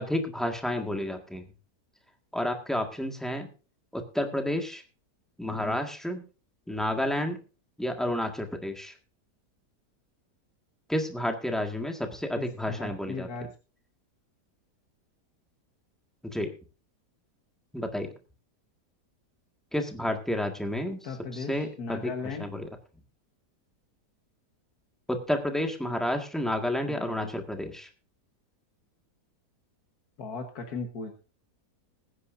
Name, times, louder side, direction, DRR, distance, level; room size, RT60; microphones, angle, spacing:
voice 1, 0.0-1.5 2.3-3.5 3.9-4.8 5.4-6.2 6.7-7.4 7.8-8.9 10.9-13.3 16.2-16.5 17.7-18.1 19.7-21.0 21.3-22.7 25.1-27.9, left 1 dB, ahead, 3 dB, 1.6 m, -30 dB
voice 2, 12.4-13.5 21.0-22.5 26.8-27.3 30.2-31.1, left 4 dB, 65° left, 4 dB, 1.8 m, -37 dB
21.0 x 9.8 x 2.6 m, 0.34 s
omnidirectional pair, 1.8 m